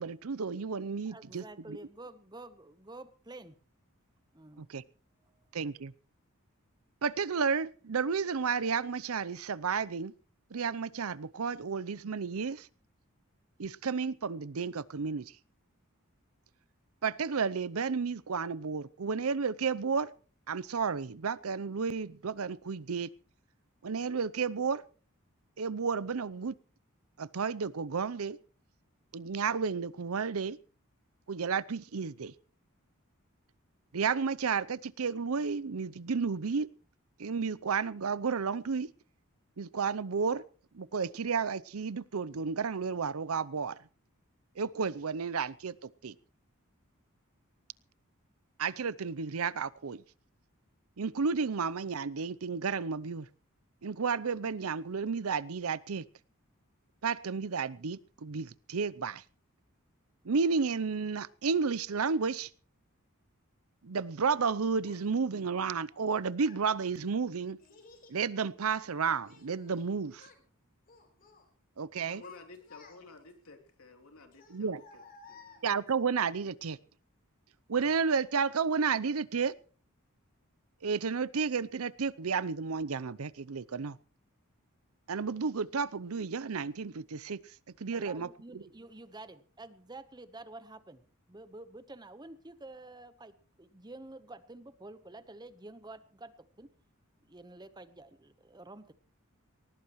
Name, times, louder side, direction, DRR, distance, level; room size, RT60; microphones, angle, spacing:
voice 1, 0.0-1.4 4.6-4.8 5.5-5.9 7.0-10.1 10.5-12.7 13.6-15.2 17.0-20.1 20.5-23.1 23.8-24.8 25.6-26.5 27.2-28.4 29.1-30.6 31.3-32.3 33.9-36.7 37.2-38.9 39.6-40.4 40.7-43.7 44.6-45.7 46.0-46.1 48.6-50.0 51.0-53.3 53.8-56.0 57.0-59.2 60.2-62.5 63.8-67.6 68.1-70.2 71.8-72.2 74.5-74.8 75.6-76.8 77.7-79.5 80.8-84.0 85.1-87.4 87.8-88.3, right 5 dB, 85° right, 0.7 m, -32 dB
voice 2, 1.1-3.6 4.3-4.7 5.2-5.5 87.9-96.7 97.2-98.9, right 2 dB, 20° right, 1.1 m, -49 dB
Child speech kid speaking, 64.8-65.0 65.9-66.7 67.6-68.2 68.6-69.9 70.1-70.4 70.9-71.5 71.9-73.3 74.3-76.0, left 4 dB, 45° left, 4.2 m, -56 dB
voice 3, 71.9-75.0 75.3-75.7, left 3 dB, 85° left, 3.3 m, -53 dB
20.0 x 19.5 x 3.2 m
head